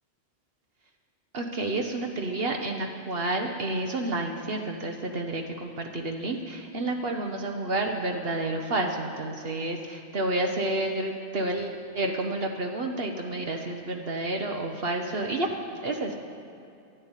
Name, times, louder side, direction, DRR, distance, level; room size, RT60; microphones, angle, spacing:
voice 1, 1.3-15.5 15.8-16.2, right 2 dB, 60° right, 2 dB, 1.2 m, -30 dB
12.0 x 9.8 x 8.9 m, 2.7 s
omnidirectional pair, 1.1 m